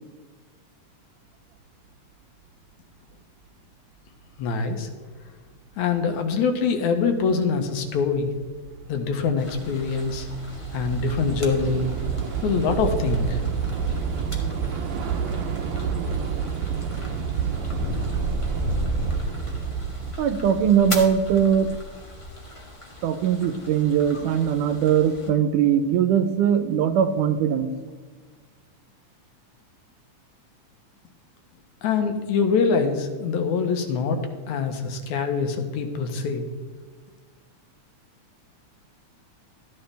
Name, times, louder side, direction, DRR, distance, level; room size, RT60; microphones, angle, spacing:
voice 1, 4.4-4.9 5.8-8.3 8.9-10.3 10.7-11.9 12.4-13.4 31.8-36.4, left 5 dB, 75° left, 6 dB, 2.3 m, -24 dB
Train / Subway metro underground, 7.1-7.3 7.6-20.1, right 7 dB, 70° right, 1.8 m, -29 dB
sound 1, 9.4-25.3, left 1 dB, 55° left, 0.3 m, -35 dB
voice 2, 20.2-21.7 23.0-27.7, right 8 dB, 90° right, 11 dB, 2.2 m, -21 dB
13.5 x 9.8 x 3.4 m, 1.5 s
omnidirectional pair, 3.5 m